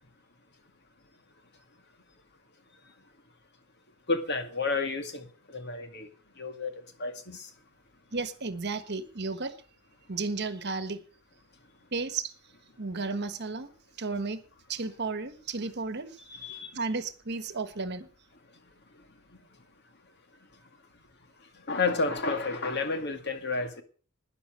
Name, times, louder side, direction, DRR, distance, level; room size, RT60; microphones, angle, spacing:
voice 1, 4.1-6.1 6.4-6.7 7.0-7.5 16.4-16.7 21.7-23.8, left 3 dB, 55° left, 2.1 m, -31 dB
voice 2, 8.1-9.6 10.1-11.0 11.9-12.3 12.8-13.7 14.0-14.4 14.7-16.2 16.7-18.1, right 4 dB, 55° right, 1.4 m, -33 dB
12.0 x 10.0 x 6.4 m
head